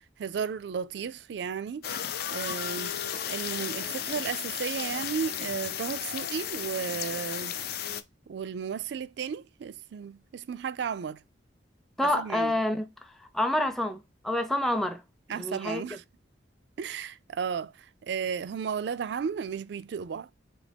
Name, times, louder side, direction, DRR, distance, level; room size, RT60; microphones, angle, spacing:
voice 1, 0.2-1.9 2.3-3.0 3.3-7.6 8.3-11.2 12.0-12.6 15.3-16.0 16.8-20.3, right 6 dB, 60° right, 0.3 m, -34 dB
sound 1, 1.8-8.0, left 9 dB, 55° left, 0.4 m, -34 dB
voice 2, 12.0-12.9 13.3-15.0 15.3-15.8, left 1 dB, ahead, 0.5 m, -28 dB
4.2 x 2.9 x 3.3 m
head